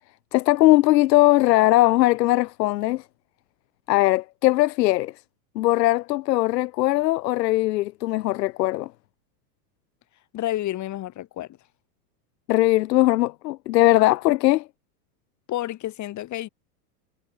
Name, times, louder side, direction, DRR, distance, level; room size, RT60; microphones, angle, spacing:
voice 1, 0.3-3.0 3.9-5.1 5.6-8.9 12.5-14.7, left 17 dB, 90° left, 0.6 m, -20 dB
voice 2, 10.3-11.6 15.5-16.5, left 14 dB, 35° left, 2.9 m, -30 dB
supercardioid pair, 120°, 48 cm